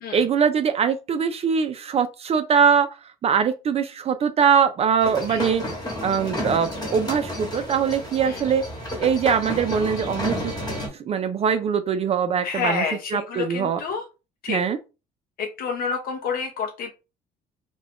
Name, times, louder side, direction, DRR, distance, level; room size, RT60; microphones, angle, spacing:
voice 1, 0.1-2.9 3.2-5.6 6.0-8.6 9.0-10.5 11.1-12.8 13.1-13.8 14.5-14.8, right 7 dB, 35° right, 0.3 m, -22 dB
sound 1, 5.0-10.9, left 1 dB, 25° left, 1.2 m, -31 dB
voice 2, 12.4-14.0 14.4-14.6 15.4-16.9, left 5 dB, 60° left, 0.6 m, -28 dB
2.4 x 2.2 x 3.4 m
cardioid pair, 110°, 17 cm